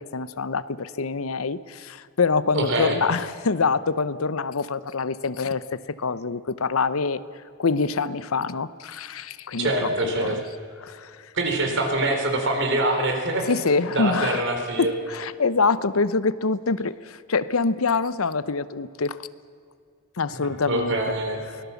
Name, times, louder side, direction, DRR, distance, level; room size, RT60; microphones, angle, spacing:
voice 1, 0.0-7.2 7.6-10.4 10.8-11.2 13.5-14.4 14.8-19.2 20.2-21.0, left 4 dB, 80° left, 16 dB, 0.8 m, -25 dB
voice 2, 2.5-3.0 9.6-10.4 11.3-13.5 13.9-14.9 20.4-21.5, right 2 dB, 60° right, 4 dB, 3.9 m, -24 dB
24.0 x 18.5 x 7.1 m, 2.3 s
head